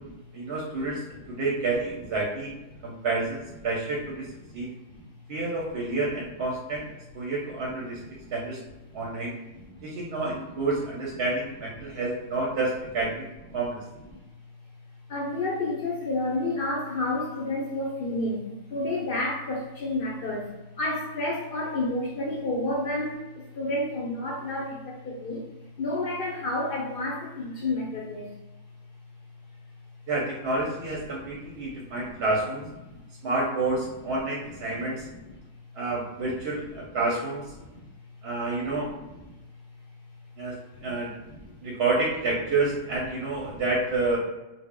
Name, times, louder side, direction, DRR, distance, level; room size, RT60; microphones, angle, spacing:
voice 1, 0.3-2.5 2.8-4.3 4.5-4.7 5.3-8.0 8.3-8.6 8.9-9.4 9.8-13.3 13.5-13.8 30.1-32.6 33.2-35.1 35.8-37.5 38.2-38.9 40.4-41.1 41.6-44.2, right 3 dB, 65° right, -3 dB, 0.7 m, -29 dB
voice 2, 9.5-9.9 11.8-11.9 14.1-14.2 15.1-25.4 25.8-28.3 31.2-31.3 31.6-32.2 32.9-33.0 35.1-35.2 37.7-37.8 38.7-39.0 40.8-40.9 41.2-41.4 43.5-43.6, left 2 dB, 60° left, -3 dB, 0.6 m, -31 dB
2.0 x 2.0 x 3.5 m, 1.0 s
omnidirectional pair, 1.3 m